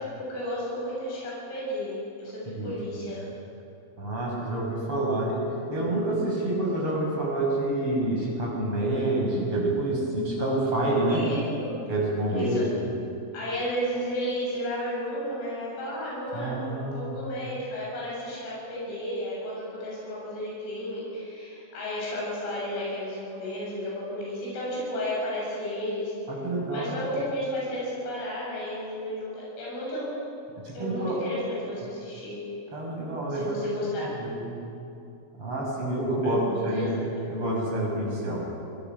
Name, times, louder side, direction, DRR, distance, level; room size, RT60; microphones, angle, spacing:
voice 1, 0.0-3.3 11.1-11.8 12.3-12.6 13.3-26.1 26.7-30.1 30.8-32.4 33.3-34.1 36.2-36.9, equal, 85° left, -6 dB, 10.5 m, -33 dB
voice 2, 4.0-5.4 5.7-11.3 11.9-12.6 16.3-17.2 26.3-27.0 30.6-31.2 32.7-33.6 34.0-34.5 35.4-37.0 37.3-38.4, right 1 dB, 25° right, -3 dB, 6.9 m, -28 dB
27.5 x 22.0 x 6.2 m, 2.7 s
omnidirectional pair, 5.8 m